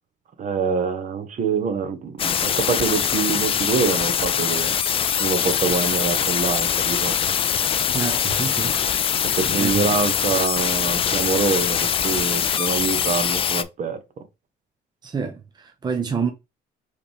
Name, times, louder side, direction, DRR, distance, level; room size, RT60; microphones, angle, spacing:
voice 1, 0.4-4.7 5.2-7.2 9.3-14.0, right 5 dB, 45° right, 1.0 m, -25 dB
sound 1, 2.2-13.6, left 8 dB, 35° left, 0.4 m, -22 dB
voice 2, 7.9-8.7 9.4-9.8 15.0-16.3, right 6 dB, 25° right, 0.7 m, -27 dB
4.9 x 3.2 x 3.4 m
cardioid pair, 110°, 17 cm